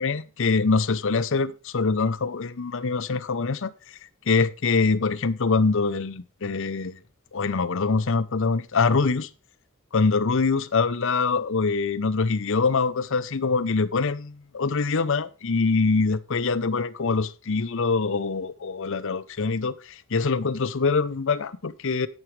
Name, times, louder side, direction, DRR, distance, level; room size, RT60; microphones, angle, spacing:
voice 1, 0.0-3.7 4.3-7.0 7.3-9.3 9.9-22.1, left 4 dB, 65° left, 0.7 m, -24 dB
11.0 x 8.9 x 3.2 m
head